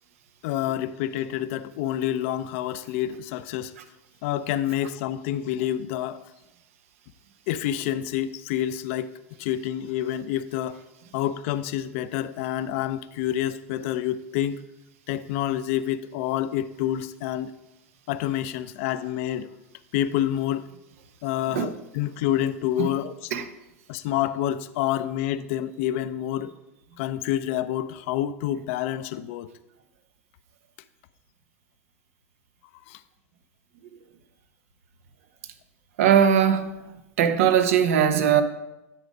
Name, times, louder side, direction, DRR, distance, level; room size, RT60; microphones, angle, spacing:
voice 1, 0.4-3.7 4.2-6.2 7.5-9.1 9.4-10.8 11.1-14.6 15.1-17.5 18.1-19.5 19.9-20.7 21.2-23.3 23.9-26.5 27.0-29.5 32.9-33.0, left 12 dB, 60° left, 0.5 m, -28 dB
voice 2, 36.0-36.8 37.2-38.4, right 8 dB, 70° right, 0.8 m, -20 dB
9.8 x 4.1 x 5.1 m
hypercardioid pair, 90°, 8 cm